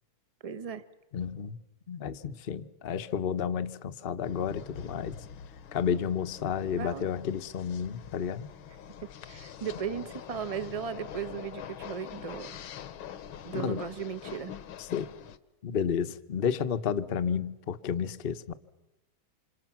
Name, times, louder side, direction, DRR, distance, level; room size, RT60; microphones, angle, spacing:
voice 1, 0.4-0.8 6.7-7.1 8.7-8.8 9.3-12.6 13.4-14.6, right 7 dB, 40° right, 0.4 m, -36 dB
voice 2, 1.1-1.6 1.9-5.1 5.7-8.5 13.5-13.8 14.9-15.1 15.6-18.5, left 7 dB, 45° left, 0.7 m, -31 dB
sound 1, 4.2-15.4, left 8 dB, 75° left, 1.8 m, -45 dB
28.0 x 26.5 x 6.0 m
omnidirectional pair, 2.3 m